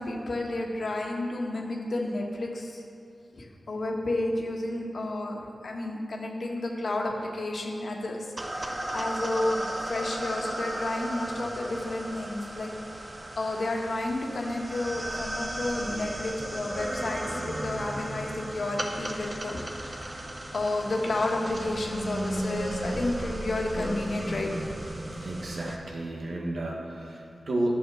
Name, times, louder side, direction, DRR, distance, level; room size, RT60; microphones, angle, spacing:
voice 1, 0.0-2.8 3.3-8.3 8.5-12.7 13.4-19.6 20.0-20.1 20.5-24.5, left 2 dB, 65° left, 0 dB, 1.6 m, -31 dB
sound 1, 8.4-25.8, right 1 dB, 30° right, 1.1 m, -35 dB
voice 2, 25.2-27.8, right 1 dB, 75° right, -1 dB, 1.7 m, -32 dB
11.0 x 7.1 x 6.4 m, 2.6 s
cardioid pair, 60°, 0 cm